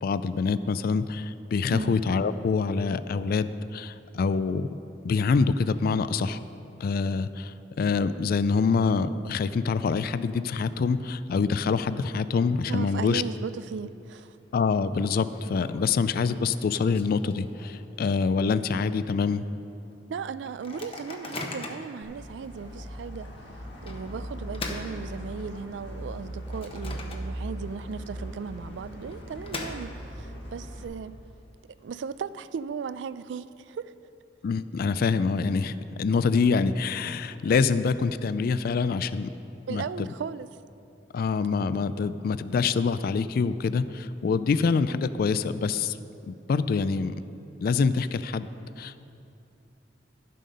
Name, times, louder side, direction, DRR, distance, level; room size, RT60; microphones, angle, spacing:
voice 1, 0.0-4.7 5.0-6.4 6.8-13.2 14.5-19.4 34.4-39.3 39.7-39.8 41.1-46.0 46.3-47.1 47.6-48.5 48.8-49.1, left 5 dB, 55° left, 14 dB, 0.3 m, -25 dB
voice 2, 1.7-2.0 12.7-14.4 20.1-23.3 23.8-31.2 31.8-33.9 39.7-40.5, right 6 dB, 75° right, 15 dB, 0.3 m, -36 dB
Microwave oven, 13.8-14.2 14.5-14.6 14.9-18.0 18.4-18.5 18.8-19.1 19.6-19.7 20.5-22.0 22.6-22.7 23.9-25.7 26.1-27.6 27.9-28.0 28.9-30.3, left 3 dB, 30° left, 0.8 m, -41 dB
sound 1, 22.0-30.8, equal, 85° left, 1.6 m, -39 dB
12.0 x 7.6 x 5.2 m, 2.7 s
head